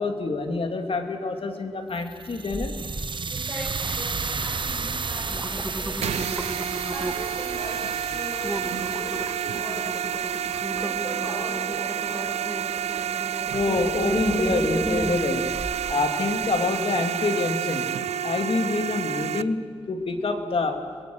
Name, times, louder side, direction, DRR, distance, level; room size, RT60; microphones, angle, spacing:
voice 1, 0.0-2.7 13.5-15.6 15.9-18.0 18.2-20.8, left 3 dB, 60° left, 6 dB, 2.5 m, -26 dB
sound 1, 1.9-12.1, right 4 dB, 50° right, 1.0 m, -34 dB
sound 2, 2.5-3.1 3.5-4.0 4.6-4.7 5.1-7.4 7.8-8.0 8.4-15.9 16.4-16.5, right 1 dB, 10° right, 1.3 m, -34 dB
voice 2, 3.3-6.6 6.9-7.8 8.1-9.1 9.4-10.4 10.8-12.6, equal, 15° left, -6 dB, 7.7 m, -40 dB
sound 3, 6.0-19.4, right 9 dB, 90° right, 0.5 m, -29 dB
30.0 x 22.0 x 6.4 m, 2.3 s
cardioid pair, 70°, 11 cm